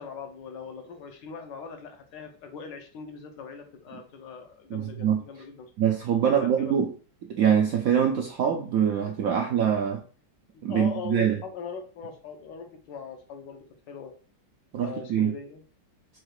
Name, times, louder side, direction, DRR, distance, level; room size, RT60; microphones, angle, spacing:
voice 1, 0.0-5.7 6.2-6.8 10.7-14.1 14.8-15.6, left 5 dB, 70° left, 1.5 m, -40 dB
voice 2, 4.7-5.2 5.8-6.9 7.3-10.0 10.6-11.4 14.7-15.3, right 8 dB, 75° right, 0.8 m, -24 dB
4.6 x 2.4 x 4.7 m
omnidirectional pair, 2.1 m